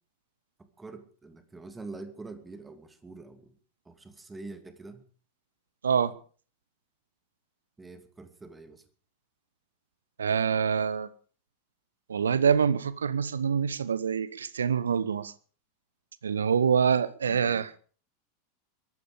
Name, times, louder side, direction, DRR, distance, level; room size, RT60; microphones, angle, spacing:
voice 1, 0.6-3.6 3.8-5.0 7.8-8.8 17.3-17.6, right 3 dB, 10° right, 2.6 m, -45 dB
voice 2, 5.8-6.2 10.2-11.1 12.1-15.3 16.2-17.7, right 7 dB, 70° right, 0.9 m, -25 dB
23.0 x 12.0 x 5.1 m
figure-of-eight pair, 85°, 0 cm